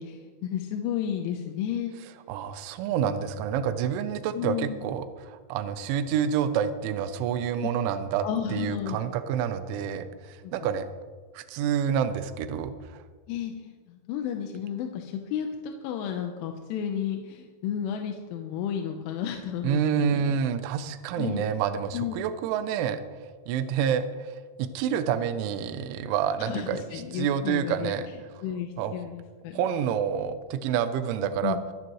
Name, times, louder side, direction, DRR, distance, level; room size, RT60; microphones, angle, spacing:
voice 1, 0.0-1.9 4.4-4.8 7.5-7.7 8.2-9.0 10.4-10.5 13.3-20.3 21.2-21.4 21.9-22.2 26.4-27.9 28.4-29.6 31.2-31.6, left 9 dB, 85° left, 4 dB, 3.3 m, -32 dB
voice 2, 2.3-10.9 11.3-13.0 19.6-23.0 23.5-28.1 28.8-28.9 29.5-31.6, right 8 dB, 80° right, 10 dB, 3.2 m, -28 dB
25.5 x 10.0 x 3.1 m, 1.5 s
omnidirectional pair, 5.5 m